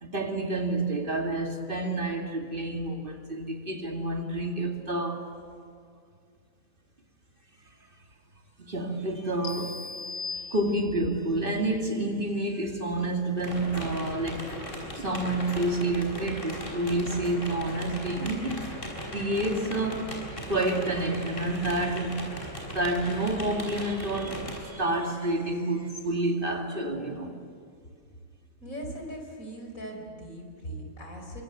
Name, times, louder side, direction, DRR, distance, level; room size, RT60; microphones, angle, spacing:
voice 1, 0.0-5.3 8.6-9.9 10.3-14.6 15.0-18.6 19.1-20.2 20.5-22.2 22.7-27.4, right 2 dB, 40° right, 2.4 m, -29 dB
sound 1, 9.4-11.2, left 4 dB, 60° left, 1.2 m, -38 dB
sound 2, 13.4-24.6, equal, 40° left, 5.6 m, -38 dB
voice 2, 28.6-31.4, right 1 dB, 75° left, 5.1 m, -39 dB
29.5 x 24.5 x 7.9 m
omnidirectional pair, 1.4 m